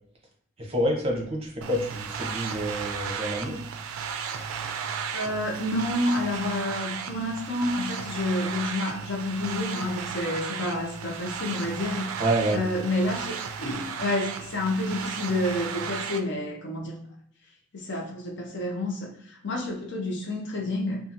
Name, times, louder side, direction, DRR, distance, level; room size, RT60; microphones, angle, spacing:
voice 1, 0.6-3.6 12.2-12.6, right 1 dB, 30° right, -1 dB, 0.6 m, -28 dB
sound 1, 1.6-16.2, right 7 dB, 80° right, 0.3 m, -35 dB
voice 2, 5.1-12.2 12.5-17.0 17.7-21.0, left 1 dB, 55° left, 1 dB, 0.6 m, -29 dB
2.7 x 2.4 x 2.5 m, 0.70 s
head